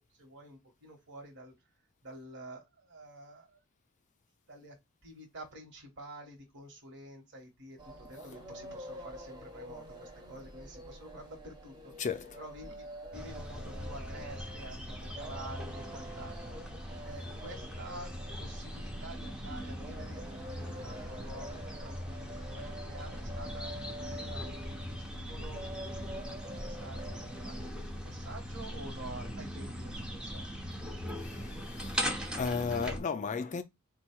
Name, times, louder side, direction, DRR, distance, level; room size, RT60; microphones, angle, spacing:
voice 1, 0.2-1.5 2.0-3.6 4.5-11.9 12.4-12.9 13.1-16.6 17.0-18.1 18.4-25.6 26.0-30.6, right 1 dB, 55° right, 1.3 m, -49 dB
sound 1, 7.8-27.7, right 1 dB, 20° right, 1.0 m, -48 dB
voice 2, 12.0-12.4 31.1-32.1 32.4-33.6, left 5 dB, 35° left, 0.4 m, -35 dB
sound 2, 13.1-33.0, equal, 5° right, 0.6 m, -40 dB
4.3 x 2.3 x 4.3 m
head